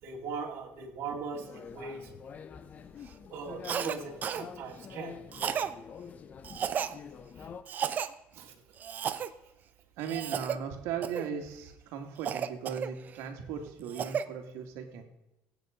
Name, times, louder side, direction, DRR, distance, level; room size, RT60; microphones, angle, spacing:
voice 1, 0.0-2.1 3.3-5.1 7.4-7.5 8.3-8.5, right 5 dB, 55° right, 0 dB, 2.7 m, -40 dB
sound 1, 1.3-7.6, left 6 dB, 35° left, 0.8 m, -46 dB
Cough, 3.6-4.5 5.3-5.7 6.4-6.9 7.7-8.1 8.8-9.3 10.0-10.6 11.0-11.3 12.2-13.2 13.7-14.3, right 8 dB, 40° right, 0.8 m, -33 dB
voice 2, 10.0-15.0, right 7 dB, 75° right, 5 dB, 2.4 m, -37 dB
16.0 x 9.2 x 5.2 m, 0.88 s
cardioid pair, 130°, 5 cm